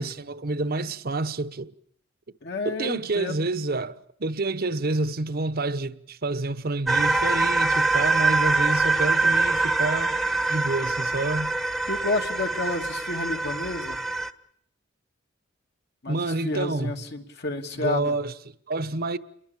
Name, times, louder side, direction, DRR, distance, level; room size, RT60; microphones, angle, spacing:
voice 1, 0.0-1.7 2.6-10.2 10.5-11.5 16.1-16.9 17.7-18.3 18.7-19.2, right 2 dB, 50° right, 1.0 m, -28 dB
voice 2, 2.4-3.4 11.9-14.0 16.0-18.2, left 2 dB, 60° left, 2.7 m, -30 dB
sound 1, 6.9-14.3, right 3 dB, ahead, 1.1 m, -24 dB
29.0 x 22.5 x 7.3 m
head